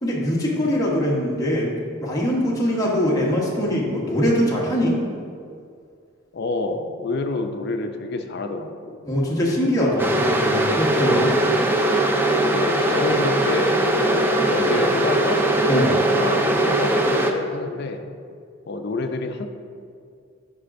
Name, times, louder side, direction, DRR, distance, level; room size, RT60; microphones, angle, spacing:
voice 1, 0.0-5.0 9.0-11.3 15.7-16.0, equal, 15° left, -4 dB, 1.0 m, -22 dB
voice 2, 6.3-9.0 9.3-9.7 10.9-11.4 12.4-18.0 18.7-19.5, left 3 dB, 50° left, 6 dB, 0.5 m, -28 dB
sound 1, 10.0-17.3, right 1 dB, 10° right, 0.3 m, -20 dB
9.7 x 4.9 x 2.5 m, 2.3 s
head